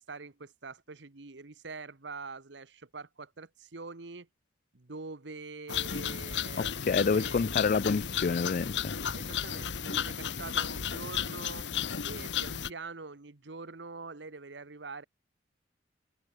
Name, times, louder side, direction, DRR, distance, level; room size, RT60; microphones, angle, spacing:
voice 1, 0.0-4.3 4.7-6.7 7.0-7.7 9.1-11.7 12.0-15.0, right 4 dB, 85° right, 1.3 m, -44 dB
sound 1, 5.7-12.7, left 8 dB, 80° left, 1.1 m, -34 dB
voice 2, 6.6-8.9, left 5 dB, 50° left, 0.4 m, -28 dB
head